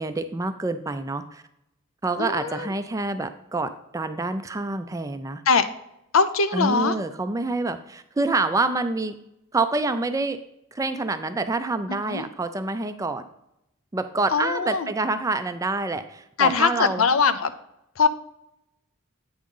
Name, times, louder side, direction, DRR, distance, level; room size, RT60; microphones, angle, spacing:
voice 1, 0.0-1.4 2.0-5.4 6.5-9.1 9.5-10.4 10.7-13.2 13.9-17.0, right 3 dB, 15° right, 9 dB, 0.4 m, -27 dB
voice 2, 2.2-2.7 5.5-5.7 6.1-7.0 12.1-12.2 14.3-14.9 16.4-17.5 18.0-18.1, left 5 dB, 85° left, 11 dB, 0.6 m, -21 dB
8.7 x 3.7 x 5.4 m, 0.81 s
head